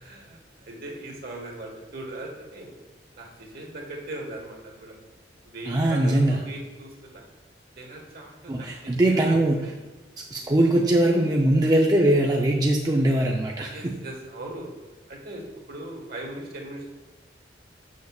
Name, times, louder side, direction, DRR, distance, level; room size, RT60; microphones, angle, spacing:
voice 1, 0.0-2.7 3.2-4.9 5.4-7.2 7.8-8.8 9.0-9.7 10.3-10.5 13.7-14.7 15.1-16.9, right 1 dB, 55° right, 0 dB, 1.4 m, -39 dB
voice 2, 5.7-6.4 8.5-9.6 10.3-13.9, right 1 dB, 20° right, -1 dB, 0.5 m, -21 dB
6.9 x 6.5 x 2.3 m, 1.3 s
head